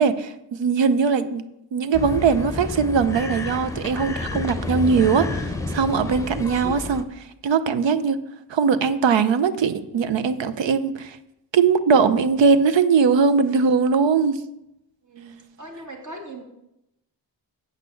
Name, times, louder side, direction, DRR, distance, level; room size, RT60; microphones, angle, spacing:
voice 1, 0.0-1.5 1.7-8.2 8.5-11.2 11.5-14.4, right 5 dB, 80° right, 13 dB, 0.8 m, -20 dB
sound 1, 1.9-7.0, left 2 dB, 5° left, 0.8 m, -30 dB
voice 2, 15.1-16.4, right 1 dB, 40° right, 1 dB, 2.3 m, -39 dB
8.2 x 6.2 x 6.9 m, 0.86 s
wide cardioid pair, 100°, 44 cm